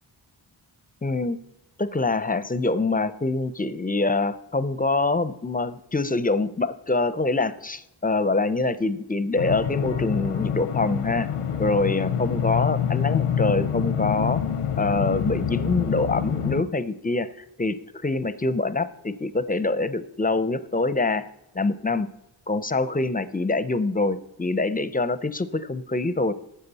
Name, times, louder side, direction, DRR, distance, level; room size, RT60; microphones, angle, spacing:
voice 1, 1.0-1.4 1.8-11.3 11.6-14.4 14.8-17.3 17.6-17.8 18.0-21.3 21.5-22.1 22.5-26.3, left 3 dB, 20° left, 15 dB, 0.5 m, -25 dB
sound 1, 9.4-16.6, left 8 dB, 90° left, 0.7 m, -26 dB
12.5 x 7.5 x 4.1 m, 0.89 s
wide cardioid pair, 70°, 49 cm